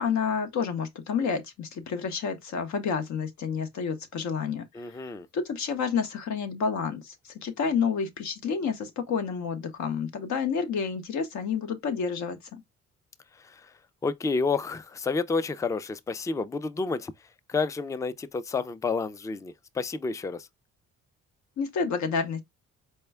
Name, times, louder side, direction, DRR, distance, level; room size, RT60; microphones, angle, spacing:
voice 1, 0.0-4.6 5.0-12.6 21.6-22.4, left 6 dB, 70° left, 0.8 m, -29 dB
voice 2, 4.7-5.3 13.4-13.7 14.0-17.1 17.5-20.5, left 4 dB, 10° left, 0.3 m, -30 dB
4.3 x 2.2 x 3.3 m
cardioid pair, 90°, 30 cm